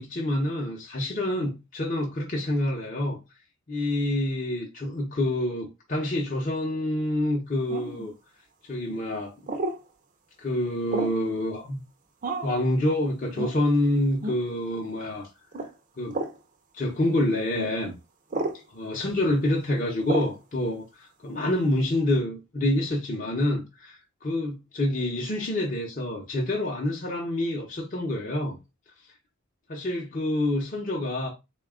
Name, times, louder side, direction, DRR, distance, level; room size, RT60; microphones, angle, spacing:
voice 1, 0.0-3.2 3.7-8.1 8.7-9.3 10.4-11.8 12.4-15.3 16.0-16.2 16.7-18.0 18.7-28.6 29.7-31.3, left 1 dB, 35° left, 0.7 m, -27 dB
sound 1, 7.7-8.1 9.5-9.8 10.9-11.2 12.2-12.6 13.4-13.6 14.2-14.4 15.5-15.7 16.1-16.4 17.5-17.7 18.3-18.6 20.1-20.4, right 2 dB, 35° right, 0.5 m, -30 dB
4.0 x 2.3 x 3.6 m
head